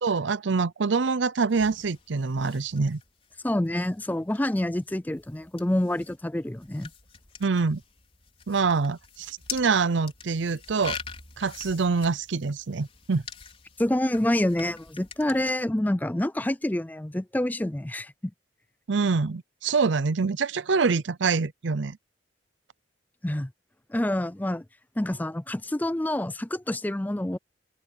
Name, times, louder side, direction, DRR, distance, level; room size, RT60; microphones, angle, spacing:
voice 1, 0.0-3.0 7.4-7.8 8.5-11.0 11.4-13.2 18.9-22.0, right 4 dB, 75° right, 0.6 m, -25 dB
sound 1, 1.5-15.5, left 6 dB, 30° left, 5.2 m, -45 dB
voice 2, 3.4-6.9 13.8-18.1 23.2-23.5 23.9-24.6 25.0-27.4, left 1 dB, 10° left, 0.4 m, -27 dB
head